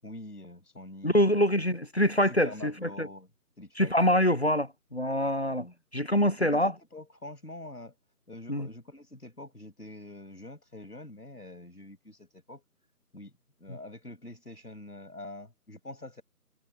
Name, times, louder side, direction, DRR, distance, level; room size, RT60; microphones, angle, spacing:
voice 1, 0.0-1.8 2.4-3.3 3.6-4.3 5.4-5.8 6.2-8.0 8.3-12.6 13.1-16.2, left 1 dB, 75° left, 6.7 m, -46 dB
voice 2, 1.0-2.7 3.0-3.1 3.8-5.7 5.9-6.7 8.5-8.7, equal, 45° left, 0.6 m, -25 dB
figure-of-eight pair, 165°, 47 cm